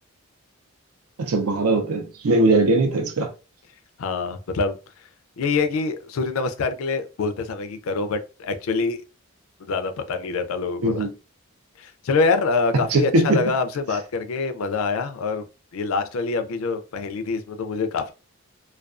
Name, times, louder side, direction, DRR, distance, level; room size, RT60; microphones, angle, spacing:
voice 1, 1.2-3.3 10.8-11.1 12.9-13.4, right 2 dB, 90° right, 0.5 m, -20 dB
voice 2, 4.0-4.8 5.4-9.0 9.6-11.1 11.8-15.4 15.7-18.1, left 4 dB, 75° left, 0.4 m, -25 dB
2.3 x 2.2 x 2.4 m
head